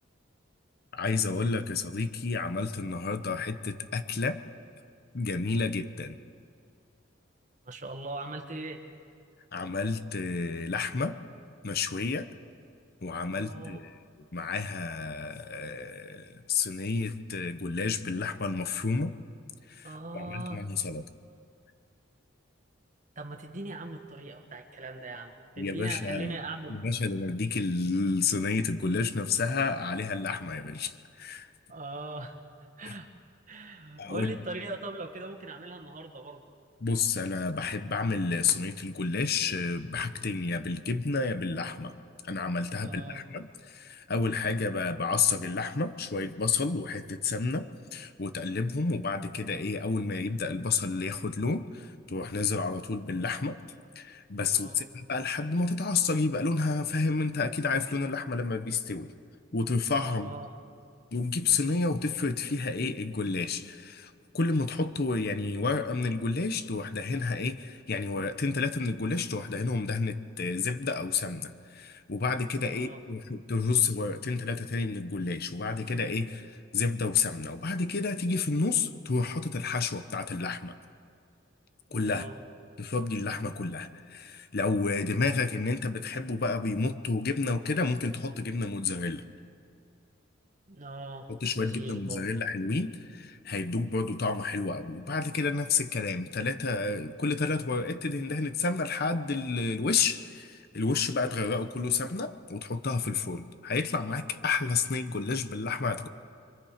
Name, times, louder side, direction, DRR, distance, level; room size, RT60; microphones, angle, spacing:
voice 1, 0.9-4.4 5.1-6.2 9.5-11.2 11.6-12.3 13.0-13.9 14.3-19.1 19.7-21.1 25.6-26.3 26.7-31.5 32.9-33.0 34.0-34.4 36.8-42.0 42.3-53.6 54.0-59.1 59.5-60.3 61.1-80.8 81.9-82.3 82.8-89.2 91.3-106.1, left 4 dB, 50° left, 10 dB, 0.9 m, -30 dB
voice 2, 7.6-8.8 13.3-13.8 19.8-20.7 23.1-26.9 31.7-32.4 32.8-33.1 33.5-36.4 42.8-43.3 54.5-54.8 60.0-60.6 72.6-73.0 81.9-82.4 90.7-92.3, right 2 dB, 40° right, 4 dB, 1.7 m, -40 dB
26.0 x 24.5 x 5.1 m, 2.3 s
head